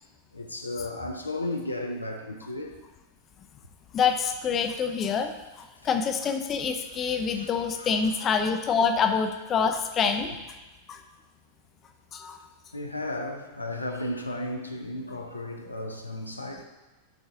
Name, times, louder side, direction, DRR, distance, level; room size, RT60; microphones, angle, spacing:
voice 1, 0.3-2.8 6.9-8.0 12.7-16.6, left 1 dB, 85° left, 4 dB, 0.7 m, -34 dB
voice 2, 3.9-10.3 10.9-11.0 12.1-12.4, left 6 dB, 30° left, 5 dB, 0.6 m, -26 dB
11.0 x 3.9 x 3.8 m, 1.1 s
figure-of-eight pair, 90°, 0 cm